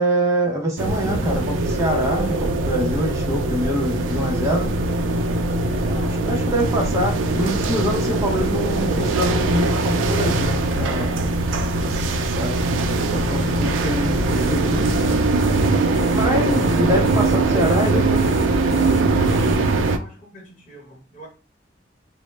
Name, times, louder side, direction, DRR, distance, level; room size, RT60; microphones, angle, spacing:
voice 1, 0.0-4.7 5.9-11.3 11.8-12.6 13.1-15.0 16.1-18.2, equal, 15° right, 0.5 m, -24 dB
sound 1, 0.8-20.0, right 2 dB, 80° right, 0.3 m, -21 dB
sound 2, 1.0-3.3 3.6-4.6 5.4-5.8 6.8-7.0, right 1 dB, 75° left, 0.7 m, -35 dB
sound 3, 14.0-19.5, right 1 dB, 25° left, 0.8 m, -37 dB
voice 2, 17.6-21.3, equal, 45° left, 1.1 m, -43 dB
2.0 x 2.0 x 3.1 m
head